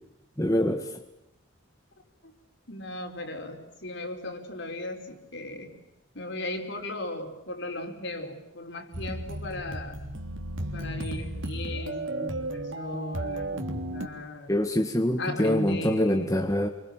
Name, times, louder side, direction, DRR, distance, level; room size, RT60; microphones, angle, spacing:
voice 1, 0.4-0.9 14.5-16.7, left 1 dB, 15° left, 4 dB, 1.8 m, -25 dB
voice 2, 2.7-5.7 6.1-10.0 10.7-14.5 15.2-16.3, left 1 dB, 55° left, 4 dB, 4.9 m, -36 dB
sound 1, 8.9-14.1, right 1 dB, 65° right, 3.1 m, -34 dB
30.0 x 25.0 x 7.5 m, 0.90 s
head